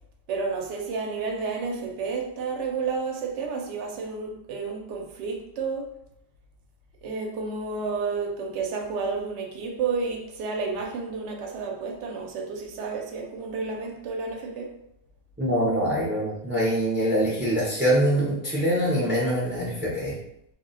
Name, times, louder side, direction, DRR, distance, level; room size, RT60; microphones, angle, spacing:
voice 1, 0.3-6.0 7.0-14.8, right 4 dB, 70° right, 0.9 m, -31 dB
voice 2, 15.4-20.2, equal, 20° right, 0.3 m, -24 dB
2.3 x 2.1 x 3.7 m
omnidirectional pair, 1.3 m